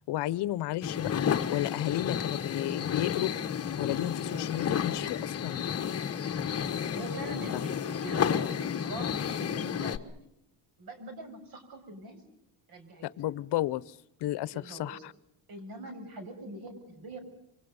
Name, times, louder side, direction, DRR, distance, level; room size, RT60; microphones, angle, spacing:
voice 1, 0.1-3.3 3.8-5.7 7.5-7.6 13.0-15.1, left 14 dB, 65° left, 19 dB, 0.9 m, -33 dB
sound 1, 0.8-10.0, left 8 dB, 35° left, 1.3 m, -31 dB
voice 2, 6.6-10.2 10.8-12.2 12.7-13.1 14.5-15.0 15.5-17.2, right 1 dB, 55° right, 8 dB, 6.8 m, -43 dB
27.5 x 24.0 x 5.4 m, 0.79 s
cardioid pair, 135°, 43 cm